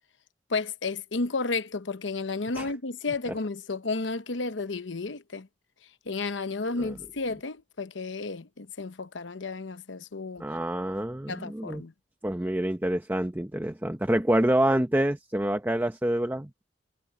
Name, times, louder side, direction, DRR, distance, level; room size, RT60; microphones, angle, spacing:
voice 1, 0.5-5.5 6.1-10.4 11.3-11.9, left 3 dB, 80° left, 0.9 m, -32 dB
voice 2, 10.4-11.8 12.2-16.7, right 1 dB, 10° right, 0.7 m, -27 dB
head